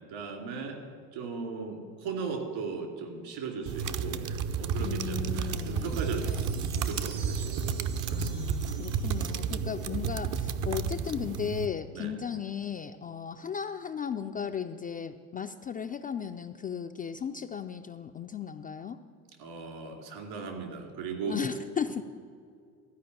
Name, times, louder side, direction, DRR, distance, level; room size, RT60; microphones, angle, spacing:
voice 1, 0.1-0.8 1.1-4.2 4.5-6.4 6.7-7.8 8.1-8.4 11.9-12.1 19.4-21.4, right 5 dB, 65° right, 2 dB, 2.9 m, -37 dB
sound 1, 3.7-11.7, right 6 dB, 45° right, 0.7 m, -32 dB
voice 2, 4.8-6.6 8.1-19.0 21.3-22.0, left 7 dB, 20° left, 6 dB, 0.3 m, -36 dB
sound 2, 5.4-10.2, right 6 dB, 85° right, 1.5 m, -49 dB
13.0 x 5.2 x 8.8 m, 2.2 s
hypercardioid pair, 65°, 44 cm